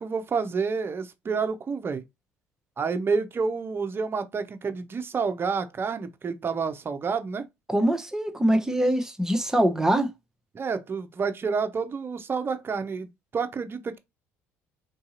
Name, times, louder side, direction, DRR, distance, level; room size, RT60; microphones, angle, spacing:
voice 1, 0.0-2.0 2.8-7.5 10.5-14.0, right 5 dB, 35° right, 0.7 m, -29 dB
voice 2, 7.7-10.1, right 1 dB, 10° right, 0.9 m, -23 dB
3.9 x 2.7 x 2.4 m
hypercardioid pair, 65°, 7 cm